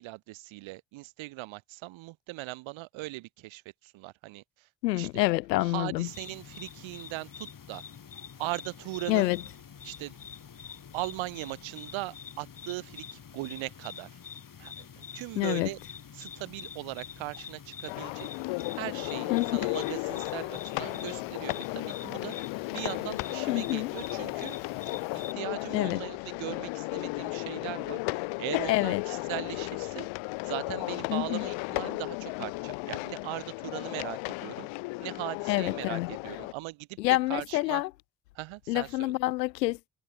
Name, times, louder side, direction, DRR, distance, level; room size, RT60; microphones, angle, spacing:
voice 1, 0.0-5.2 5.6-7.8 8.4-9.3 9.8-10.2 10.9-14.1 14.6-15.8 16.1-18.3 18.7-22.3 22.7-24.6 25.1-30.1 30.4-34.7 35.0-37.0 37.3-37.8 38.3-39.1, right 19 dB, 70° right, 4.0 m, -39 dB
voice 2, 4.8-6.1 9.1-9.4 15.4-15.7 19.3-19.7 23.5-23.9 25.7-26.0 28.7-29.0 31.1-31.5 35.5-36.1 37.0-37.9 38.7-39.9, left 18 dB, 85° left, 0.7 m, -27 dB
sound 1, 6.1-25.3, left 7 dB, 40° left, 4.9 m, -46 dB
sound 2, 17.9-36.5, left 26 dB, 70° left, 1.5 m, -35 dB
hypercardioid pair, 50°, 49 cm